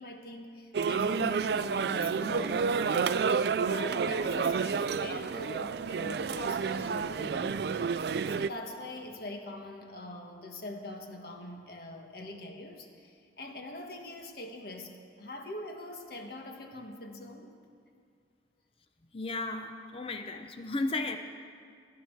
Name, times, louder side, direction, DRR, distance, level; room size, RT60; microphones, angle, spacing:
voice 1, 0.0-7.6 8.3-14.9 15.2-17.5, left 1 dB, 55° left, 3 dB, 1.4 m, -42 dB
sound 1, 0.7-8.5, right 5 dB, 60° right, 0.3 m, -30 dB
voice 2, 19.1-21.2, left 2 dB, 30° left, 7 dB, 0.6 m, -34 dB
18.0 x 11.5 x 4.6 m, 2.2 s
head